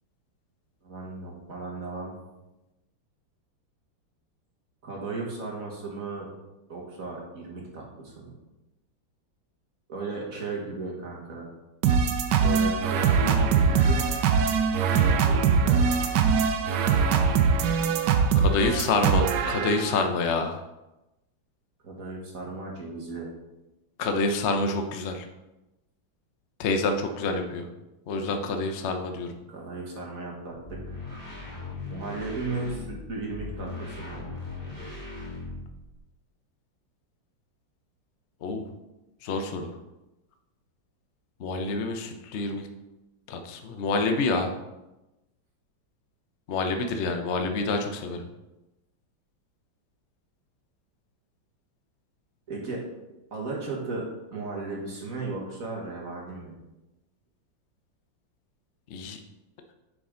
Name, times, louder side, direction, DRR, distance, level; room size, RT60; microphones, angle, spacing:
voice 1, 0.8-2.2 4.8-6.3 6.7-8.4 9.9-11.5 12.4-14.2 15.2-15.8 21.8-23.3 28.2-28.4 29.5-31.0 31.9-34.2 52.5-52.9 53.3-56.5, right 3 dB, 45° right, -2 dB, 1.8 m, -35 dB
sound 1, 11.8-20.0, right 6 dB, 70° right, 1.2 m, -22 dB
voice 2, 18.4-20.6 24.0-25.3 26.6-27.7 28.1-29.4 38.4-38.6 39.2-39.8 41.4-42.7 43.3-44.5 46.5-48.3 58.9-59.2, left 3 dB, 65° left, 5 dB, 0.7 m, -27 dB
sound 2, 30.6-36.0, left 3 dB, 25° right, 2.1 m, -38 dB
8.3 x 5.0 x 3.8 m, 0.99 s
omnidirectional pair, 2.1 m